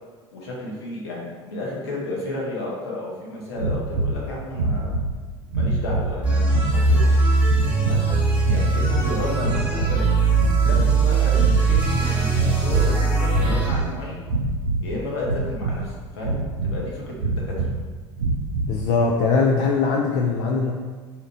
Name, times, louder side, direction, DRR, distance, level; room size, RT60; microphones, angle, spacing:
voice 1, 0.3-4.9 5.5-7.3 7.6-8.2 8.5-10.0 10.6-14.2 14.8-17.7, left 1 dB, 65° left, -4 dB, 0.9 m, -32 dB
sound 1, 3.6-4.2 4.5-5.1 5.5-6.1 6.5-7.1 7.4-8.0 8.4-9.1 9.4-10.0 10.3-11.0 11.3-11.9 12.3-12.9 13.3-13.9 14.3-14.8 15.2-15.9 16.2-16.8 17.2-17.7 18.2-18.7, right 2 dB, 80° right, 0.4 m, -25 dB
sound 2, 6.2-13.8, right 4 dB, 10° right, 1.3 m, -20 dB
voice 2, 18.7-20.7, left 4 dB, 50° left, 0 dB, 0.4 m, -21 dB
2.8 x 2.5 x 4.0 m, 1.4 s
figure-of-eight pair, 65°, 14 cm